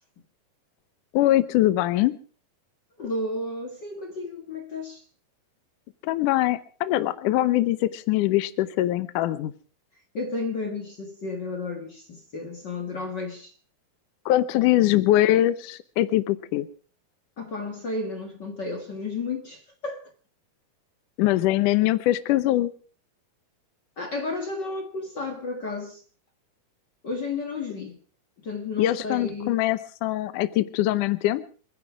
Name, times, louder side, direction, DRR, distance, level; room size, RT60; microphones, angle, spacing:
voice 1, 1.1-2.2 6.0-9.5 14.3-16.7 21.2-22.7 28.8-31.4, left 15 dB, 75° left, 2.0 m, -22 dB
voice 2, 3.0-5.0 10.1-13.5 17.4-20.1 24.0-26.0 27.0-28.0 28.4-29.6, left 3 dB, 50° left, 1.2 m, -32 dB
27.0 x 10.5 x 4.6 m
omnidirectional pair, 4.6 m